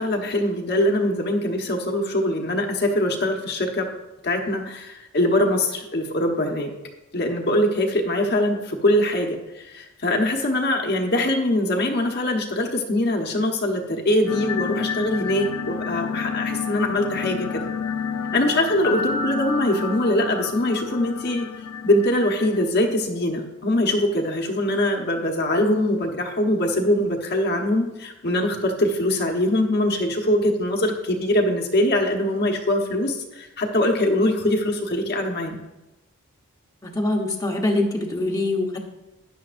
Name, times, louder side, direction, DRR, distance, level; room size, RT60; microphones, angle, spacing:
voice 1, 0.0-3.9 4.2-6.7 7.1-17.7 18.3-21.5 21.8-35.6, left 1 dB, 50° left, 2 dB, 1.2 m, -22 dB
sound 1, 14.3-22.7, left 6 dB, 90° left, 0.6 m, -30 dB
Piano, 18.8-20.9, left 1 dB, 70° left, 1.4 m, -33 dB
voice 2, 36.8-38.8, left 2 dB, 15° left, -1 dB, 1.0 m, -24 dB
12.5 x 10.0 x 2.6 m, 0.99 s
head